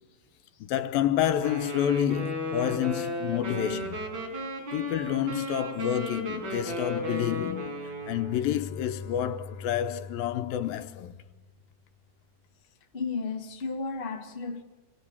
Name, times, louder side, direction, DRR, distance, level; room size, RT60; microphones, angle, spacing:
voice 1, 0.6-4.1 4.7-11.2, left 10 dB, 75° left, 2.6 m, -29 dB
Wind instrument woodwind instrument, 1.4-8.4, left 1 dB, 55° right, 6.4 m, -34 dB
Bowed string instrument, 7.7-11.8, left 5 dB, 60° left, 2.4 m, -43 dB
voice 2, 12.9-14.6, left 4 dB, 35° left, 0.9 m, -33 dB
27.0 x 23.0 x 7.3 m
omnidirectional pair, 4.3 m